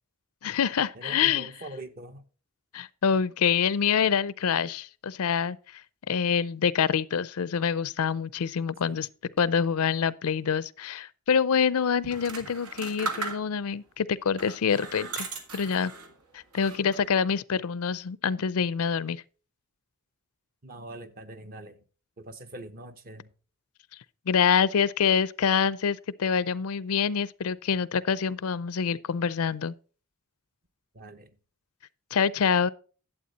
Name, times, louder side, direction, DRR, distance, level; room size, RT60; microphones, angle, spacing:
voice 1, 0.4-1.5 2.7-5.6 6.1-9.1 9.4-15.3 15.5-15.9 16.3-19.2 24.3-29.7 32.1-32.7, left 7 dB, 75° left, 0.5 m, -26 dB
voice 2, 0.9-2.2 8.9-9.1 20.6-21.8 22.2-23.3 30.9-31.3, right 1 dB, 40° right, 1.0 m, -43 dB
sound 1, 12.0-13.8 14.3-16.1 16.5-17.2, right 3 dB, 85° right, 1.9 m, -37 dB
11.5 x 8.0 x 4.1 m
head